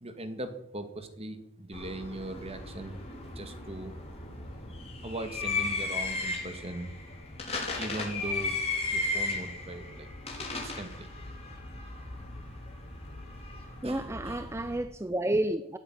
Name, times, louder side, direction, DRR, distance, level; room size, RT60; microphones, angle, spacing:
voice 1, 0.0-3.0 3.4-4.0 5.0-7.0 7.8-8.5 8.9-10.1 10.4-11.1 13.8-14.5, right 1 dB, 30° right, 1.9 m, -39 dB
sound 1, 1.7-14.8, left 3 dB, 30° left, 5.3 m, -36 dB
voice 2, 13.8-15.8, right 1 dB, 10° right, 0.6 m, -30 dB
17.5 x 8.8 x 9.4 m
head